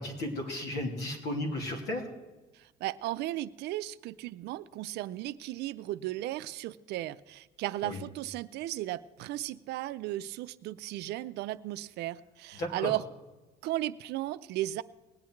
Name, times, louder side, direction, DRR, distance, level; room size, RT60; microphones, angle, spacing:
voice 1, 0.0-2.0 7.8-8.0 12.6-12.9, left 1 dB, 70° left, 2 dB, 2.7 m, -34 dB
voice 2, 2.5-13.0 13.6-14.8, right 15 dB, 80° right, 14 dB, 0.5 m, -35 dB
19.5 x 8.4 x 4.6 m, 1.2 s
cardioid pair, 110°, 17 cm